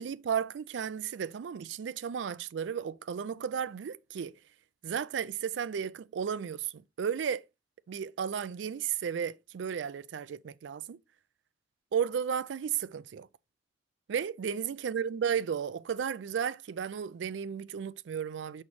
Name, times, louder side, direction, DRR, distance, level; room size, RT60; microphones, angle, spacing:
voice 1, 0.0-4.3 4.8-7.4 7.9-11.0 11.9-13.3 14.1-18.6, right 7 dB, 70° right, 0.4 m, -34 dB
7.0 x 4.3 x 3.2 m
head